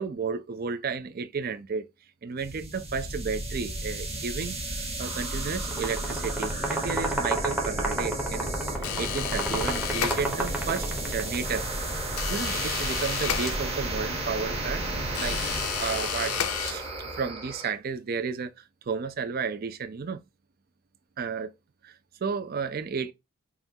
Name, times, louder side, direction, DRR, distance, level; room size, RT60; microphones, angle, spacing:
voice 1, 0.0-1.9 2.2-8.5 9.0-11.6 12.3-16.9 17.1-18.5 18.9-20.2 21.2-21.5 21.8-21.9 22.2-23.1, right 5 dB, 40° right, 0.4 m, -32 dB
sound 1, 2.4-17.7, right 1 dB, 25° right, 1.1 m, -33 dB
sound 2, 5.6-11.4, right 2 dB, 5° right, 0.7 m, -31 dB
sound 3, 8.8-10.7 12.2-14.1 15.1-17.2, left 10 dB, 80° left, 0.5 m, -32 dB
5.6 x 2.3 x 2.7 m
head